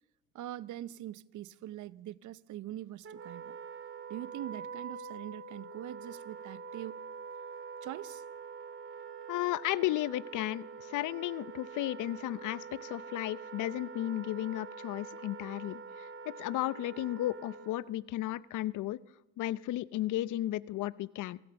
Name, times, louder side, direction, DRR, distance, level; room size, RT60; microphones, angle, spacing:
voice 1, 0.3-3.6 4.1-7.0 7.8-8.2, right 13 dB, 75° right, 0.7 m, -43 dB
Wind instrument woodwind instrument, 3.0-17.9, right 5 dB, 45° right, 1.6 m, -45 dB
voice 2, 9.3-16.1 16.4-19.0 19.4-21.4, left 15 dB, 85° left, 0.7 m, -34 dB
28.0 x 16.5 x 7.1 m
cardioid pair, 90°, 30 cm